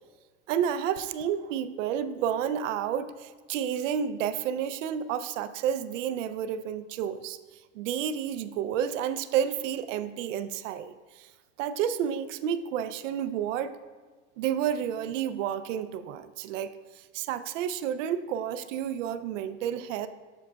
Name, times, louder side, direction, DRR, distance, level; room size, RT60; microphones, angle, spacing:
voice 1, 0.5-7.4 7.7-11.3 11.6-13.7 14.4-20.1, right 9 dB, 85° right, 11 dB, 0.5 m, -30 dB
7.3 x 6.2 x 2.2 m, 1.4 s
supercardioid pair, 135°, 37 cm